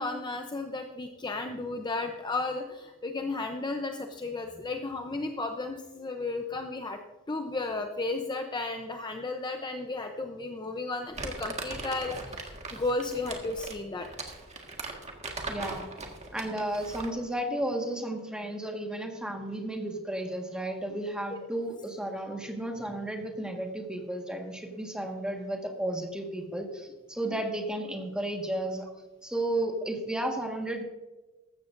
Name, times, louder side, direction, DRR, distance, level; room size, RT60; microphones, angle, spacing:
voice 1, 0.0-7.0 7.3-14.1, left 3 dB, 20° left, 4 dB, 0.7 m, -34 dB
Crumpling crinkling, 11.1-17.2, right 3 dB, 30° right, 1.7 m, -39 dB
voice 2, 15.5-15.9 16.3-28.9 29.2-30.8, right 1 dB, 5° right, 2 dB, 1.6 m, -33 dB
15.0 x 13.0 x 2.6 m, 1.2 s
head